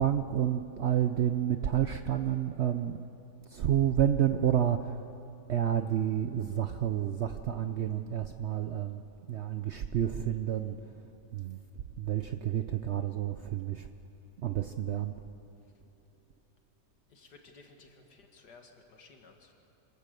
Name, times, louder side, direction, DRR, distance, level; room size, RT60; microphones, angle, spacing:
voice 1, 0.0-3.0 3.5-5.1 5.5-9.0 9.3-13.9 14.4-15.2, right 10 dB, 65° right, 8 dB, 0.7 m, -30 dB
voice 2, 17.1-19.5, left 4 dB, 85° left, 3 dB, 2.4 m, -56 dB
26.0 x 15.0 x 6.7 m, 2.9 s
omnidirectional pair, 1.7 m